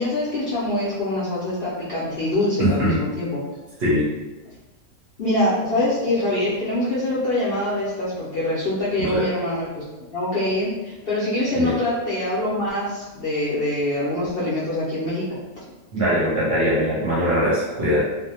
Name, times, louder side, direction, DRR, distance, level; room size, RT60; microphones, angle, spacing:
voice 1, 0.0-3.4 5.2-9.7 10.1-15.3, left 1 dB, 65° left, -9 dB, 0.6 m, -24 dB
voice 2, 2.6-3.0 3.8-4.1 9.0-9.3 11.5-11.8 15.9-18.0, equal, 60° right, -6 dB, 0.7 m, -21 dB
2.5 x 2.0 x 2.7 m, 1.1 s
omnidirectional pair, 1.5 m